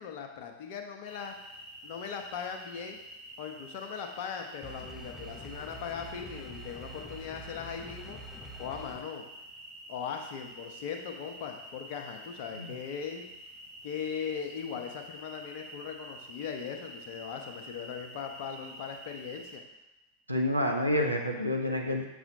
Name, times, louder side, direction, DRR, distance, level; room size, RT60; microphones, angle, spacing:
voice 1, 0.0-1.4 1.8-3.0 3.4-8.2 8.6-9.3 9.9-13.2 13.8-19.6, left 7 dB, 50° left, 4 dB, 0.8 m, -39 dB
sound 1, 1.0-19.6, right 1 dB, 20° right, 1.4 m, -48 dB
sound 2, 4.6-9.0, equal, 10° left, 0.7 m, -46 dB
voice 2, 20.3-22.0, left 1 dB, 90° right, 1 dB, 0.8 m, -28 dB
7.0 x 6.0 x 2.7 m, 0.95 s
figure-of-eight pair, 90°, 0 cm